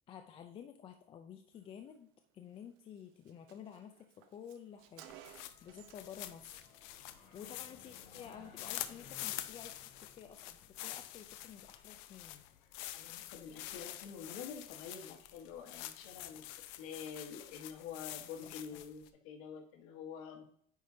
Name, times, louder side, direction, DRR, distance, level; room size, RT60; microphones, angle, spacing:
voice 1, 0.1-2.1 2.3-5.1 5.6-6.6 7.3-12.4 18.4-18.8, left 8 dB, 25° left, 6 dB, 0.4 m, -52 dB
Car, 2.6-2.7 3.0-3.1 3.3-6.2 6.5-6.8, right 11 dB, 75° right, 0.8 m, -57 dB
sound 1, 4.8-15.8, left 4 dB, 45° left, 1.7 m, -63 dB
sound 2, 5.1-19.1, left 14 dB, 75° left, 0.5 m, -47 dB
voice 2, 12.9-16.5 16.8-20.4, left 7 dB, 90° left, 3 dB, 1.4 m, -47 dB
9.0 x 4.9 x 2.7 m, 0.64 s
cardioid pair, 175°, 21 cm